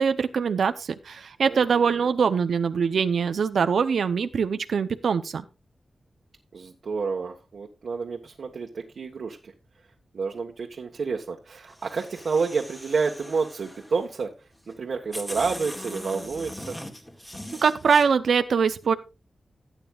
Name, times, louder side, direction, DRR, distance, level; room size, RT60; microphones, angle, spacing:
voice 1, 0.0-5.4 17.6-18.9, right 6 dB, 90° right, 11 dB, 0.6 m, -23 dB
voice 2, 1.5-2.1 6.5-9.5 10.1-14.3 14.7-16.7, right 5 dB, 70° right, 0 dB, 1.4 m, -29 dB
sound 1, 11.7-14.0 14.7-14.8 15.1-18.0, left 1 dB, 10° left, 1.9 m, -40 dB
16.5 x 9.0 x 2.4 m, 0.29 s
wide cardioid pair, 115°, 0 cm